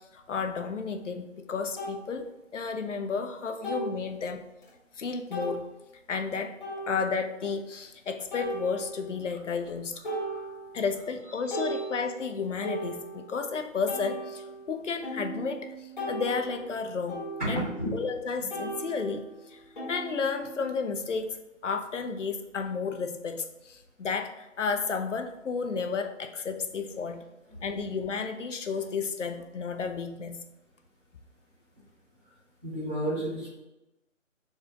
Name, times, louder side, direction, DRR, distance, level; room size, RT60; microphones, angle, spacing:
voice 1, 0.1-4.4 5.0-5.6 6.1-6.5 6.9-9.9 10.7-17.6 17.9-19.6 19.9-21.3 21.6-27.2 27.6-30.4, left 5 dB, 65° left, 7 dB, 0.6 m, -32 dB
sound 1, 0.9-1.0 1.8-2.0 3.6-4.0 4.6-4.7 5.3-5.6 6.6-7.2 8.3-9.2 9.6-9.8 10.0-10.9 11.3-13.4 13.9-18.2 18.5-20.8, right 1 dB, 40° left, 1.4 m, -37 dB
voice 2, 10.1-10.5 11.4-11.8 17.4-18.0 32.6-33.5, right 1 dB, 5° left, -20 dB, 0.9 m, -32 dB
4.2 x 2.3 x 3.7 m, 0.98 s
figure-of-eight pair, 165°, 39 cm